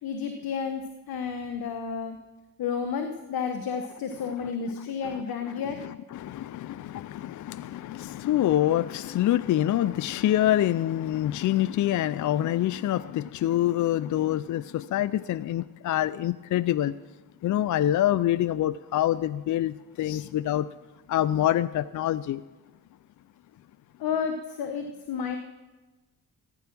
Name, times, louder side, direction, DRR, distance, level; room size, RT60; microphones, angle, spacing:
voice 1, 0.0-2.2 2.6-5.8 24.0-25.4, left 6 dB, 70° left, 1.1 m, -31 dB
voice 2, 5.8-16.9 17.4-20.7 21.1-22.4, left 12 dB, 55° left, 0.4 m, -26 dB
14.5 x 10.0 x 6.0 m
cardioid pair, 65°, 37 cm